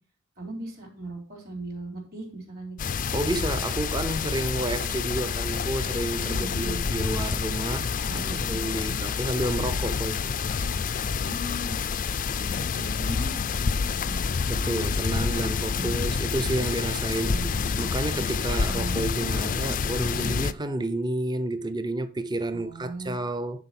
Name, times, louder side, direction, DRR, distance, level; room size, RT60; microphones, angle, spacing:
voice 1, 0.4-2.9 6.2-6.8 8.1-9.0 11.2-11.8 12.7-14.2 15.7-16.2 17.2-17.5 18.4-19.0 22.5-23.2, right 1 dB, 45° right, 3.6 m, -38 dB
sound 1, 2.8-20.5, left 5 dB, 40° left, 0.4 m, -28 dB
voice 2, 3.1-10.3 14.5-17.5 17.8-23.6, right 1 dB, 20° right, 0.6 m, -30 dB
10.5 x 4.1 x 5.9 m
head